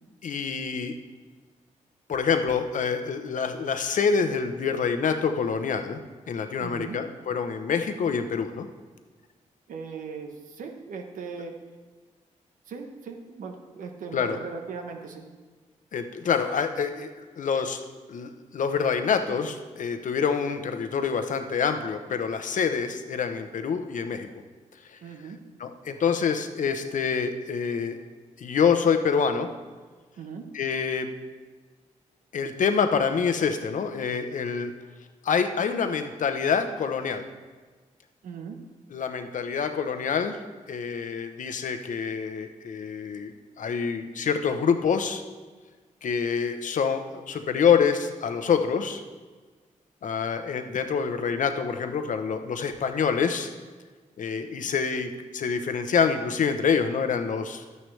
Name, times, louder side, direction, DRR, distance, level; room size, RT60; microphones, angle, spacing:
voice 1, 0.2-0.9 2.1-6.0 6.3-8.7 14.1-14.4 15.9-17.1 17.4-17.8 18.1-24.3 25.6-28.0 28.4-29.5 30.5-31.1 32.3-34.7 35.2-37.3 38.9-40.4 40.7-45.2 46.0-49.0 50.0-53.5 54.2-57.6, left 6 dB, 75° left, 8 dB, 0.8 m, -26 dB
voice 2, 6.6-7.0 9.7-11.6 12.7-15.3 25.0-25.4 30.2-30.5 38.2-38.6 54.4-54.7, right 5 dB, 90° right, 4 dB, 1.1 m, -39 dB
12.0 x 9.4 x 3.3 m, 1.4 s
cardioid pair, 70°, 13 cm